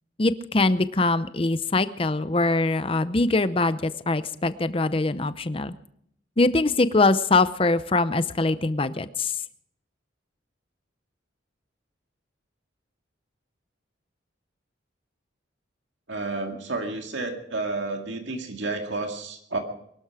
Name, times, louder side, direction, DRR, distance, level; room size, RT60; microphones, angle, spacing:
voice 1, 0.2-5.7 6.4-9.4, left 2 dB, 30° left, 13 dB, 0.7 m, -23 dB
voice 2, 16.1-19.6, right 3 dB, 75° right, 3 dB, 2.2 m, -31 dB
23.0 x 12.5 x 4.9 m, 0.70 s
head